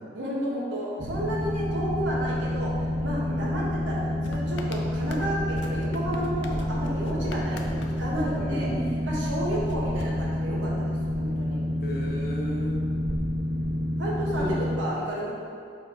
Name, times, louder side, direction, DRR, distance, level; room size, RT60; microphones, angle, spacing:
voice 1, 0.1-2.7 3.0-8.7 9.0-11.6 14.0-15.3, right 1 dB, 85° right, -5 dB, 1.4 m, -32 dB
Boat Water vehicle, 1.0-14.8, left 1 dB, 50° right, 0.5 m, -29 dB
voice 2, 3.2-3.5 8.4-9.1 11.8-12.8 14.4-14.6, equal, 55° left, -3 dB, 1.0 m, -35 dB
sound 1, 4.2-9.1 9.7-10.9, left 2 dB, 75° left, 0.5 m, -42 dB
4.6 x 4.1 x 5.4 m, 2.2 s
head